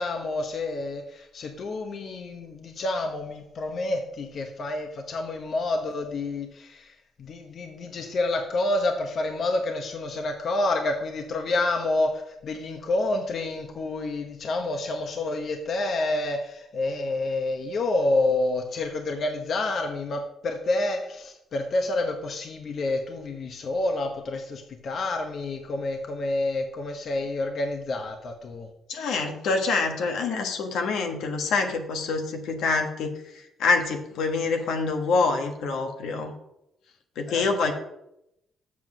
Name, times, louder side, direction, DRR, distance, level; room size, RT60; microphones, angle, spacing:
voice 1, 0.0-28.7 37.3-37.5, left 2 dB, 55° left, 4 dB, 1.0 m, -28 dB
voice 2, 28.9-33.2 33.6-36.3 37.2-37.7, left 4 dB, 80° left, 4 dB, 1.3 m, -26 dB
7.4 x 5.7 x 6.2 m, 0.83 s
cardioid pair, 90°, 0 cm